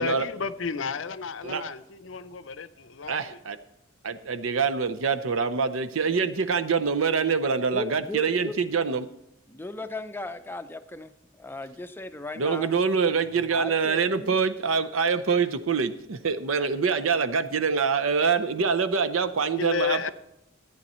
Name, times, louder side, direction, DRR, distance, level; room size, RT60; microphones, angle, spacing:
voice 1, 0.0-3.4 19.6-20.1, left 5 dB, 65° left, 14 dB, 0.5 m, -32 dB
voice 2, 3.1-3.6 4.0-9.1 12.4-20.1, right 5 dB, 75° right, 10 dB, 0.6 m, -25 dB
voice 3, 7.7-8.6 9.5-12.7 13.5-14.4, left 2 dB, 10° left, 9 dB, 0.5 m, -37 dB
14.0 x 9.3 x 4.3 m, 0.83 s
head